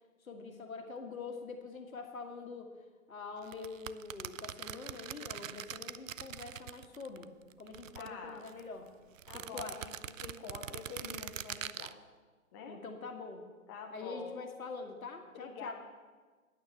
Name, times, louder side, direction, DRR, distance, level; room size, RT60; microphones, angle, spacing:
voice 1, 0.2-2.7 3.1-7.3 7.6-8.9 9.3-9.8 12.7-13.5 13.9-15.7, left 4 dB, 75° left, 5 dB, 1.8 m, -44 dB
sound 1, 3.4-7.2 7.5-8.6 9.2-11.9, right 10 dB, 65° right, 0.5 m, -43 dB
voice 2, 7.9-8.5 9.3-9.9 10.2-12.0 12.5-12.8 13.7-14.4 15.3-15.7, left 5 dB, 15° left, 2 dB, 0.6 m, -46 dB
9.4 x 9.2 x 6.8 m, 1.4 s
figure-of-eight pair, 130°, 42 cm